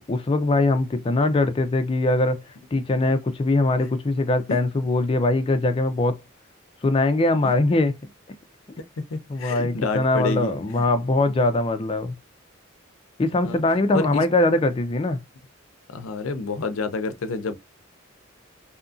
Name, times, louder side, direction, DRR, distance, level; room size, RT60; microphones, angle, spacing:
voice 1, 0.1-2.4 2.7-6.2 6.8-8.0 9.3-12.1 13.2-15.2, left 2 dB, 25° left, 0.3 m, -22 dB
voice 2, 9.1-10.9 13.4-13.6 13.9-14.2 15.9-17.6, left 3 dB, 80° left, 0.5 m, -29 dB
2.7 x 2.4 x 2.5 m
head